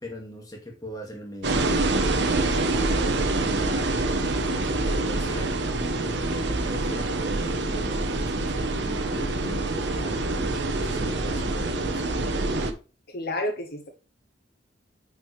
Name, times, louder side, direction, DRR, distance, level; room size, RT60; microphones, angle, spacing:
voice 1, 0.0-2.2 2.5-12.0, equal, 20° left, 0 dB, 2.1 m, -40 dB
sound 1, 1.4-12.7, right 2 dB, 65° right, 1.1 m, -26 dB
voice 2, 13.1-13.9, left 1 dB, 55° left, 4 dB, 1.0 m, -30 dB
9.4 x 5.0 x 3.4 m, 0.34 s
head